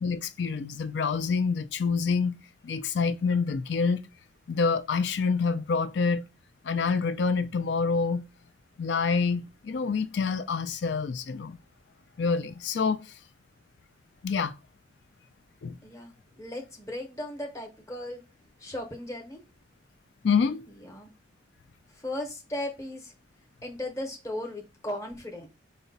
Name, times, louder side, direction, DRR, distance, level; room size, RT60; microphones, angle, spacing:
voice 1, 0.0-2.4 2.6-4.0 4.5-6.3 6.6-8.3 8.8-11.6 12.2-13.0 14.2-14.5 15.6-15.8 20.2-20.7, left 5 dB, 70° left, 0.4 m, -27 dB
voice 2, 15.8-18.2 18.6-19.4 20.8-21.1 21.9-23.1 23.6-25.5, left 1 dB, 15° left, 0.8 m, -36 dB
4.7 x 2.2 x 4.0 m
head